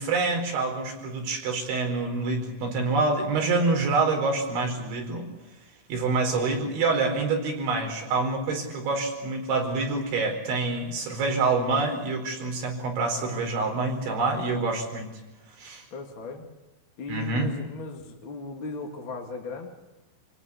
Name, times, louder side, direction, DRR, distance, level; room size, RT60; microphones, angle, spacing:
voice 1, 0.0-5.3 5.9-15.1 15.6-15.8 17.1-17.5, right 3 dB, 70° right, 2 dB, 6.9 m, -26 dB
voice 2, 6.3-6.8 7.7-8.1 15.9-16.5 17.0-19.7, left 3 dB, 40° left, 2 dB, 1.9 m, -38 dB
28.5 x 18.0 x 8.4 m, 1.0 s
omnidirectional pair, 5.6 m